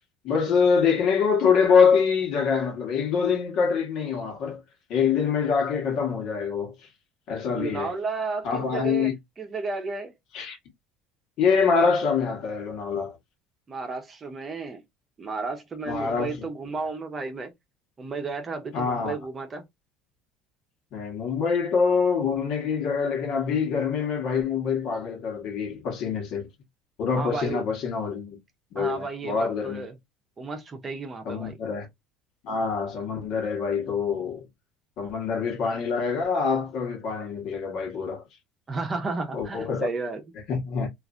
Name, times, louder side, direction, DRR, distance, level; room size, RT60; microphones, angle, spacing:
voice 1, 0.2-4.6 4.9-6.7 7.3-7.9 8.4-9.1 10.3-10.6 11.4-13.2 15.9-16.3 18.7-19.1 20.9-26.5 27.0-28.4 28.7-29.8 31.2-31.9 32.4-34.4 35.0-38.2 39.3-39.9 40.5-40.9, left 6 dB, 60° left, 1.2 m, -25 dB
voice 2, 7.5-10.1 13.7-14.8 15.2-17.5 18.0-19.6 27.1-27.6 28.8-30.0 30.4-31.6 38.7-40.2, right 4 dB, 25° right, 0.8 m, -33 dB
3.2 x 2.6 x 2.5 m
cardioid pair, 125°, 0 cm